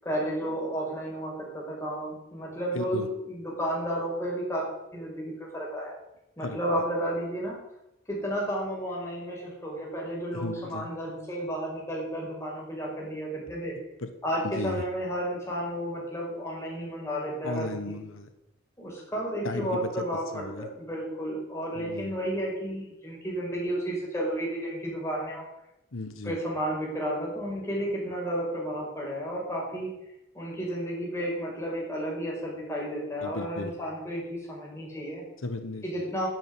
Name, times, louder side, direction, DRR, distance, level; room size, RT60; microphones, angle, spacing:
voice 1, 0.0-4.7 4.9-5.9 6.4-7.6 8.1-13.7 14.2-18.0 18.8-25.4 26.2-29.9 30.3-35.2 35.8-36.3, equal, 15° left, -3 dB, 5.3 m, -32 dB
voice 2, 2.7-3.1 6.4-6.8 10.3-10.9 14.0-14.1 14.4-14.8 17.4-18.3 19.4-20.1 20.3-20.7 21.7-22.1 25.9-26.4 33.2-33.7 35.4-35.8, left 2 dB, 90° left, 8 dB, 1.3 m, -35 dB
10.5 x 9.2 x 9.5 m, 0.88 s
head